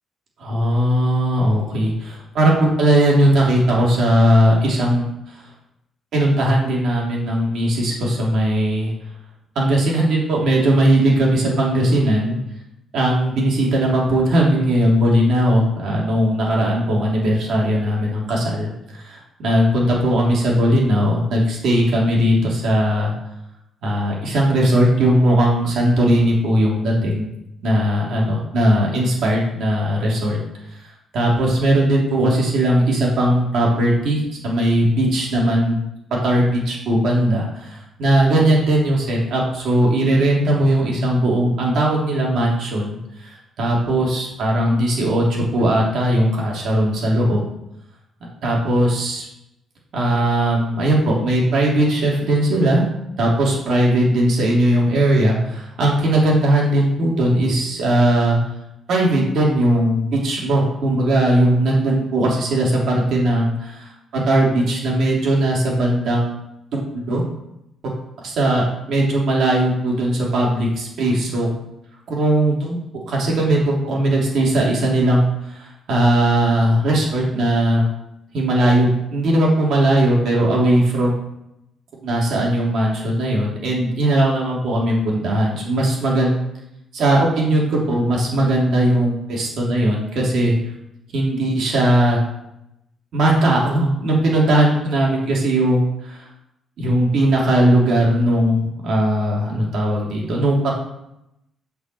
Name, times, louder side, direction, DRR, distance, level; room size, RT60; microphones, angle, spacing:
voice 1, 0.4-5.1 6.1-8.9 9.5-12.4 12.9-23.1 23.8-27.3 27.6-30.4 31.1-35.8 36.2-43.0 43.2-47.4 48.4-49.2 49.9-52.9 53.2-58.4 58.9-66.3 66.7-67.2 68.2-71.5 72.1-72.8 73.1-77.8 78.3-81.1 82.0-86.4 86.9-90.5 91.1-92.2 93.1-96.3 96.8-100.7, right 1 dB, 70° right, -3 dB, 3.2 m, -18 dB
7.9 x 4.9 x 6.9 m, 0.83 s
cardioid pair, 90°, 0 cm